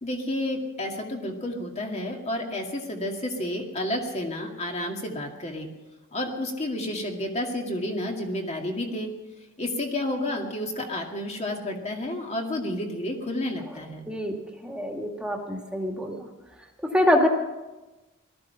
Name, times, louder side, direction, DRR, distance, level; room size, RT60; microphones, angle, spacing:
voice 1, 0.0-5.7 6.1-9.1 9.6-14.1, left 1 dB, 35° left, 2 dB, 2.2 m, -30 dB
voice 2, 14.6-16.3 16.8-17.3, left 1 dB, 5° right, 1 dB, 2.0 m, -25 dB
18.0 x 13.5 x 5.8 m, 1.1 s
head